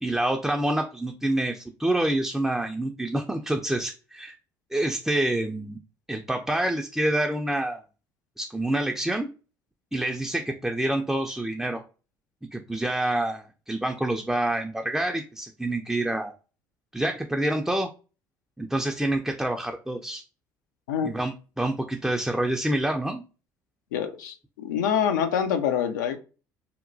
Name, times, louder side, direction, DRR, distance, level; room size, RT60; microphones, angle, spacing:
voice 1, 0.0-4.3 4.7-5.8 6.1-7.8 8.4-9.3 9.9-11.8 12.5-16.3 16.9-17.9 18.6-20.2 21.0-23.2, right 1 dB, 5° right, 0.3 m, -27 dB
voice 2, 23.9-26.2, left 8 dB, 80° left, 0.4 m, -26 dB
2.8 x 2.1 x 2.6 m
hypercardioid pair, 60°, 10 cm